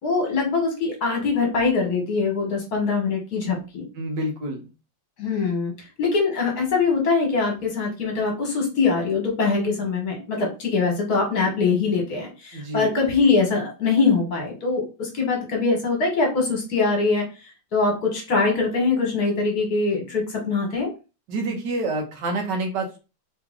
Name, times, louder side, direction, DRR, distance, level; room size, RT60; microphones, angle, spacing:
voice 1, 0.0-3.8 5.2-20.9, left 4 dB, 55° left, 1 dB, 1.7 m, -23 dB
voice 2, 4.0-4.6 12.5-12.9 21.3-23.0, right 2 dB, 70° right, 3 dB, 1.6 m, -27 dB
3.8 x 3.1 x 3.5 m, 0.31 s
omnidirectional pair, 2.0 m